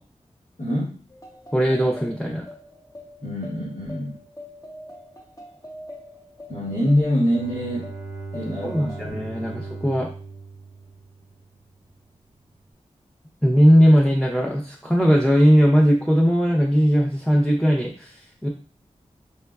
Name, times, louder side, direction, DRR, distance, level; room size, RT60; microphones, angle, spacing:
voice 1, 0.6-1.0 3.2-4.2 6.5-8.0 8.3-9.9, equal, 90° left, -10 dB, 1.4 m, -25 dB
sound 1, 1.1-10.1, left 1 dB, 25° left, 0.8 m, -44 dB
voice 2, 1.5-2.4 8.6-10.1 13.4-18.5, equal, 5° left, -2 dB, 0.6 m, -18 dB
Bowed string instrument, 7.2-11.7, right 3 dB, 65° left, 0.8 m, -38 dB
5.3 x 2.1 x 2.3 m, 0.40 s
wide cardioid pair, 60°, 12 cm